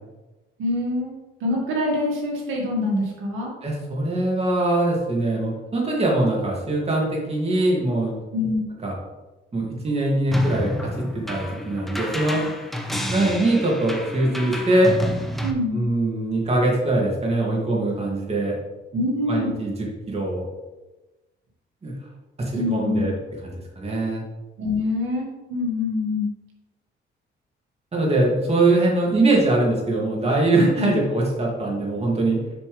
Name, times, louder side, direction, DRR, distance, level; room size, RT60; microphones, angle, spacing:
voice 1, 0.6-1.1 1.4-3.5 8.3-8.6 15.4-15.8 18.9-19.5 22.6-23.1 24.6-26.3 30.5-31.0, left 2 dB, 80° right, -2 dB, 2.0 m, -25 dB
voice 2, 3.6-8.2 8.8-8.9 9.5-12.4 12.9-14.9 15.7-18.6 19.3-20.4 21.8-21.9 22.4-23.1 23.4-24.2 27.9-32.4, right 2 dB, 30° right, -2 dB, 2.4 m, -22 dB
sound 1, 10.3-15.5, equal, ahead, 1.0 m, -29 dB
7.2 x 6.3 x 3.4 m, 1.1 s
cardioid pair, 90°, 20 cm